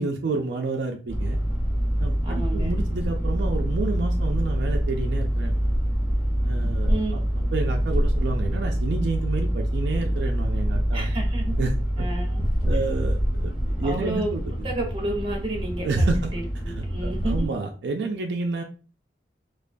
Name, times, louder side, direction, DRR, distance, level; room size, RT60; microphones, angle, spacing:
voice 1, 0.0-1.4 2.0-5.5 6.4-11.1 11.6-11.7 12.0-12.1 12.7-14.4 15.8-16.3 16.7-18.6, right 3 dB, 75° right, 3 dB, 0.4 m, -29 dB
sound 1, 1.1-17.5, equal, 45° left, 1.2 m, -25 dB
voice 2, 2.2-2.7 6.9-7.3 10.9-11.6 12.0-12.5 13.8-14.3 14.6-17.4, right 2 dB, 30° right, 1 dB, 0.7 m, -31 dB
2.3 x 2.2 x 2.5 m, 0.37 s
head